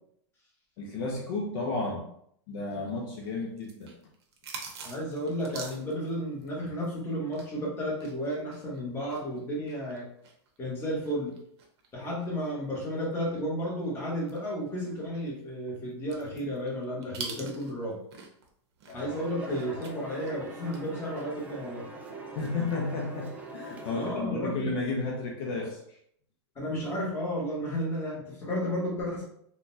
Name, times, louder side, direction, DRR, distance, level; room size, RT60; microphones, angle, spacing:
voice 1, 0.8-2.1 2.5-3.9 18.9-19.1 22.3-26.0, left 3 dB, 50° left, -1 dB, 0.6 m, -33 dB
sound 1, 2.7-7.6 7.9-13.5 13.8-13.9 14.3-18.5 18.8-20.8 21.1-21.4, right 5 dB, 65° right, 0.7 m, -45 dB
voice 2, 4.8-10.1 10.6-11.4 11.9-18.0 18.9-21.8 23.9-24.7 26.5-29.2, equal, 15° left, -5 dB, 1.1 m, -33 dB
sound 2, 19.1-24.1, right 1 dB, 10° right, 0.3 m, -42 dB
3.7 x 2.2 x 2.6 m, 0.68 s
supercardioid pair, 155°, 15 cm